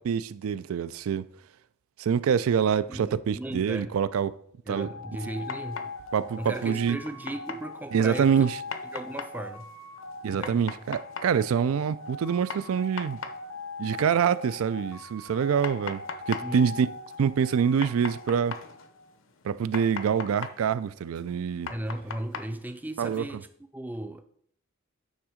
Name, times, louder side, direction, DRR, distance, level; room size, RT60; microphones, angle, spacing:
voice 1, 0.1-1.3 2.0-4.3 4.7-4.9 6.1-7.0 7.9-8.6 10.2-13.2 13.8-16.9 17.2-18.6 19.4-21.7 23.0-23.2, right 7 dB, 85° right, 0.3 m, -25 dB
voice 2, 2.9-3.9 4.7-5.9 6.4-8.5 8.9-9.7 10.3-10.6 16.4-16.7 21.7-23.5 23.7-24.2, right 1 dB, 10° right, 0.4 m, -36 dB
sound 1, 4.7-19.1, left 3 dB, 85° left, 1.0 m, -42 dB
sound 2, 5.3-23.2, left 5 dB, 65° left, 0.6 m, -42 dB
8.9 x 3.7 x 4.9 m
head